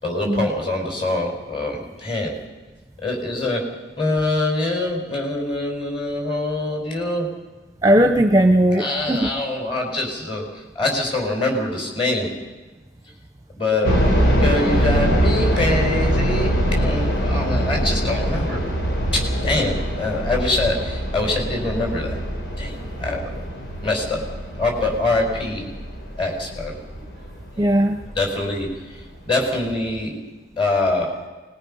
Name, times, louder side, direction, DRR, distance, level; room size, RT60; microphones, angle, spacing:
voice 1, 0.0-2.4 3.0-3.6 4.0-7.3 8.7-10.5 10.8-12.3 13.6-14.0 14.3-18.6 19.1-22.2 22.6-23.3 23.8-24.2 24.5-25.7 26.2-26.8 27.6-27.7 28.2-30.1 30.6-31.2, left 2 dB, 30° left, 0 dB, 5.4 m, -24 dB
voice 2, 7.8-9.3 27.6-28.0, right 1 dB, 20° right, 5 dB, 0.8 m, -17 dB
sound 1, 13.8-28.7 29.0-29.1 29.7-30.0, equal, 85° left, 3.5 m, -23 dB
25.0 x 20.5 x 5.7 m, 1.2 s
head